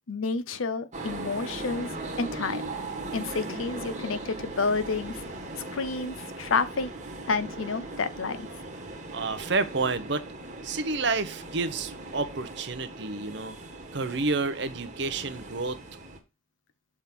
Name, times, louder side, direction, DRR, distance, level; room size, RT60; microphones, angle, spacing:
voice 1, 0.1-2.6 3.1-5.2 5.7-6.9 7.3-8.5, left 4 dB, 85° left, 0.7 m, -30 dB
sound 1, 0.9-16.2, right 2 dB, 35° right, 1.4 m, -39 dB
voice 2, 9.1-10.3 10.6-13.6 13.9-15.8, right 3 dB, 60° right, 0.8 m, -29 dB
7.1 x 3.7 x 5.9 m
head